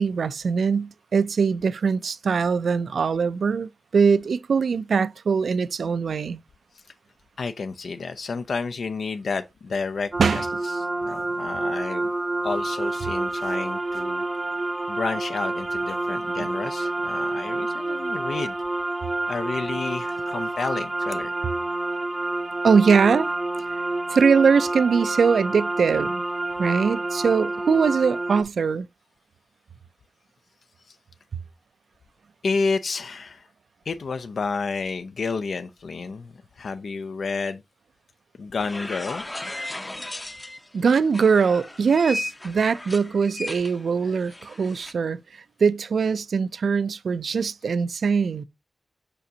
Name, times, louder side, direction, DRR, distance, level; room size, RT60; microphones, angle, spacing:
voice 1, 0.0-6.4 10.2-10.4 22.6-23.3 23.7-23.8 24.1-26.2 26.6-28.9 40.7-45.2 45.6-48.4, right 5 dB, 75° right, 0.3 m, -22 dB
voice 2, 7.4-12.1 12.4-14.2 14.9-18.5 19.3-21.3 30.9-31.0 32.4-33.5 33.9-37.6 38.4-39.2, left 4 dB, 70° left, 0.4 m, -30 dB
sound 1, 10.1-28.4, right 2 dB, 25° right, 0.7 m, -28 dB
sound 2, 38.6-40.7 41.1-44.9, left 1 dB, 15° left, 0.6 m, -36 dB
6.8 x 5.1 x 2.7 m
wide cardioid pair, 145°, 0 cm